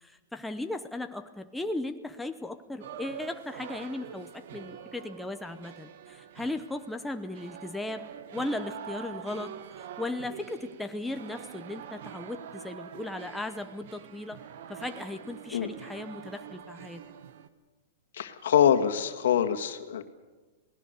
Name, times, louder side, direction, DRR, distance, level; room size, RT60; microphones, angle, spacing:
voice 1, 0.0-14.4 14.7-17.0, left 2 dB, 5° left, 6 dB, 0.8 m, -37 dB
sound 1, 2.8-17.5, right 9 dB, 60° right, 1.4 m, -45 dB
voice 2, 18.1-20.0, left 9 dB, 75° left, 7 dB, 1.8 m, -24 dB
27.0 x 18.0 x 6.7 m, 1.3 s
hypercardioid pair, 150°, 0 cm